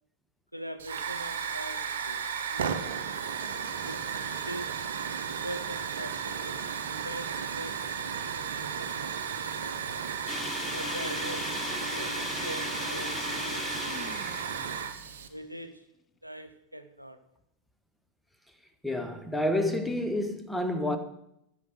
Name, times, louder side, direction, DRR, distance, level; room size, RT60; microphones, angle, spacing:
voice 1, 0.5-3.0 3.8-4.9 5.2-10.1 10.7-14.2 15.3-15.9 16.2-17.2, equal, 90° right, 0.7 m, -43 dB
Hiss / Fire, 0.8-15.3, right 7 dB, 60° right, 0.9 m, -34 dB
sound 1, 10.3-15.5, left 6 dB, 20° left, 0.3 m, -37 dB
voice 2, 18.8-21.0, left 1 dB, ahead, 1.1 m, -29 dB
12.5 x 5.8 x 6.5 m
figure-of-eight pair, 90°, 0 cm